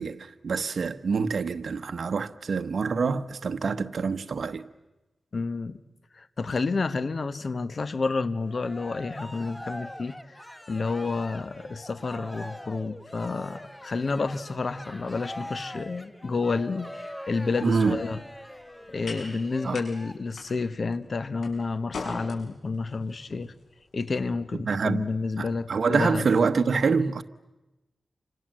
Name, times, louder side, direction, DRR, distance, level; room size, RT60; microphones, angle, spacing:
voice 1, 0.0-4.7 17.6-18.0 19.6-19.8 24.6-25.0 25.4-27.2, right 5 dB, 70° right, 1.2 m, -26 dB
voice 2, 5.3-5.8 6.1-10.4 10.7-18.2 18.9-23.5 23.9-26.3, left 4 dB, 55° left, 1.3 m, -30 dB
Cheering, 8.4-20.1, left 1 dB, 10° left, 1.2 m, -42 dB
sound 1, 17.9-25.9, left 3 dB, 90° left, 6.9 m, -45 dB
29.0 x 26.0 x 7.7 m
wide cardioid pair, 85°, 0 cm